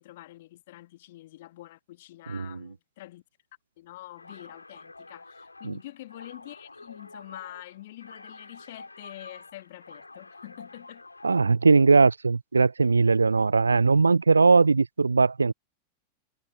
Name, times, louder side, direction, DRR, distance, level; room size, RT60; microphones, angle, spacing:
voice 1, 0.0-3.2 3.8-11.0, left 16 dB, 55° left, 1.9 m, -46 dB
voice 2, 2.3-2.7 5.6-5.8 11.2-15.5, right 4 dB, 80° right, 0.4 m, -20 dB
sound 1, 4.1-11.5, left 3 dB, 80° left, 3.2 m, -48 dB
figure-of-eight pair, 90°, 0 cm